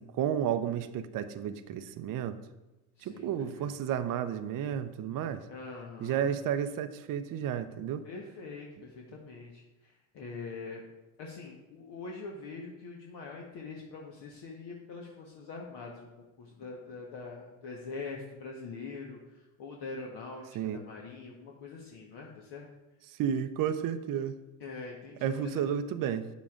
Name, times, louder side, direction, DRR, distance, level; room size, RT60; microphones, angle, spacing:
voice 1, 0.0-2.4 3.0-5.4 6.0-8.0 20.5-20.8 23.1-24.4 25.2-26.3, right 9 dB, 40° right, 10 dB, 0.6 m, -32 dB
voice 2, 3.0-3.7 5.5-6.3 8.0-10.8 11.2-22.7 24.6-25.6, left 4 dB, 50° left, -1 dB, 1.3 m, -44 dB
9.0 x 7.3 x 2.5 m, 1.0 s
hypercardioid pair, 70°, 49 cm